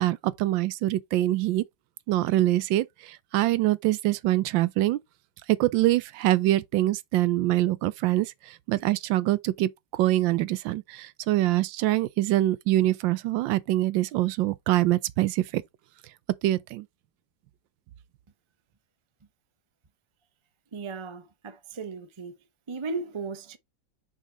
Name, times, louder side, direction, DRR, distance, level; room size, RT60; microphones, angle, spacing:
voice 1, 0.0-1.6 2.1-5.0 5.5-15.6 16.4-16.9, right 15 dB, 85° right, 1.3 m, -24 dB
voice 2, 20.7-22.3 22.7-23.6, right 4 dB, 50° right, 0.3 m, -36 dB
6.2 x 4.4 x 3.8 m
omnidirectional pair, 2.0 m